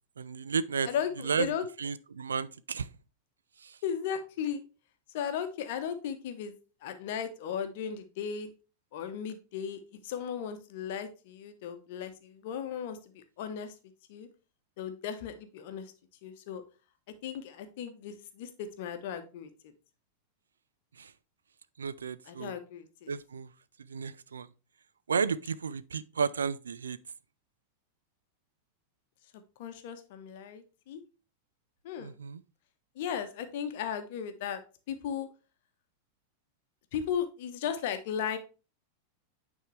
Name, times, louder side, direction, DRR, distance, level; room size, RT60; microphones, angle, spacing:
voice 1, 0.2-2.9 3.6-3.8 21.0-21.1 21.8-22.6 23.1-23.5 23.8-24.5 25.1-27.0 32.0-32.4, right 6 dB, 70° right, 0.3 m, -33 dB
voice 2, 0.9-1.6 3.8-4.6 5.1-6.5 6.8-8.5 8.9-13.7 14.1-14.3 14.8-15.9 16.2-16.6 17.2-19.5 22.3-23.1 29.6-31.0 31.8-32.1 33.0-34.6 34.9-35.3 36.9-38.4, left 8 dB, 50° left, 0.9 m, -36 dB
9.1 x 3.7 x 3.2 m
figure-of-eight pair, 90°, 0 cm